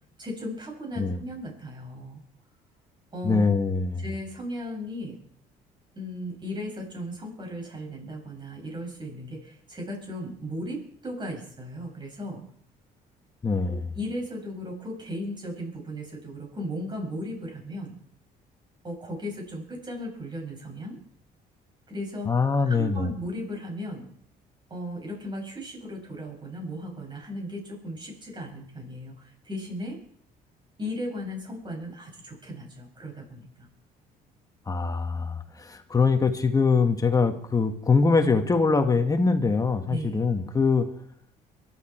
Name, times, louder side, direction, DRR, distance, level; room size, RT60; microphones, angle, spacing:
voice 1, 0.2-2.2 3.1-3.5 4.0-5.2 5.9-12.4 13.7-18.0 18.8-21.0 21.9-22.3 22.6-24.1 24.7-30.0 30.8-33.7 39.9-40.2, equal, 25° right, 1 dB, 7.4 m, -36 dB
voice 2, 3.2-4.0 13.4-13.9 22.3-23.1 34.7-40.9, left 4 dB, 20° left, 6 dB, 1.9 m, -23 dB
23.0 x 12.5 x 4.7 m, 0.64 s
cardioid pair, 110°, 17 cm